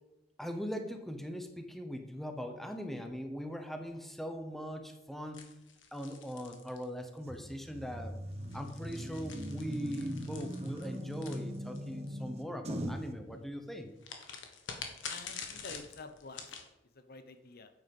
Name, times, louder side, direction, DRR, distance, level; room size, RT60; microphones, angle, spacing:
voice 1, 0.4-5.5 5.9-8.2 8.5-13.9, equal, ahead, 5 dB, 0.9 m, -40 dB
sound 1, 5.3-7.3 8.3-12.1 14.0-16.7, left 6 dB, 80° left, 1.6 m, -46 dB
sound 2, 7.3-13.1, equal, 35° right, 1.0 m, -40 dB
voice 2, 15.1-16.5 16.9-17.7, left 3 dB, 55° left, 9 dB, 0.9 m, -48 dB
9.2 x 8.1 x 5.4 m, 0.93 s
head